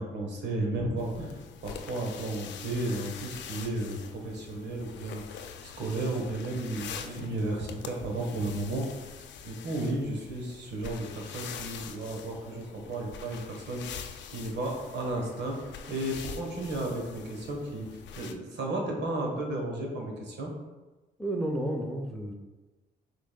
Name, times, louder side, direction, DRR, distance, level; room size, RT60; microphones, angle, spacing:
voice 1, 0.0-1.3 1.6-17.9 18.2-20.5, right 2 dB, 70° right, 1 dB, 1.1 m, -34 dB
sound 1, 1.0-18.3, left 7 dB, 75° left, 0.4 m, -44 dB
voice 2, 21.2-22.3, right 1 dB, ahead, 1 dB, 0.7 m, -31 dB
6.0 x 3.9 x 2.2 m, 1.2 s
cardioid pair, 80°, 18 cm